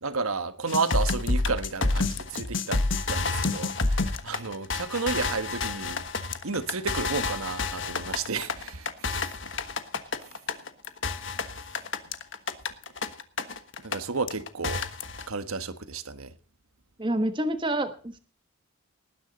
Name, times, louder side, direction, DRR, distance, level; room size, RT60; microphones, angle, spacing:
voice 1, 0.0-6.1 6.4-9.3 13.8-14.8 15.3-16.3, right 4 dB, 80° right, 1.4 m, -32 dB
sound 1, 0.7-14.0 14.3-15.3, left 3 dB, 55° left, 1.4 m, -29 dB
voice 2, 17.0-18.2, right 1 dB, 20° right, 1.3 m, -28 dB
19.5 x 10.0 x 4.1 m
head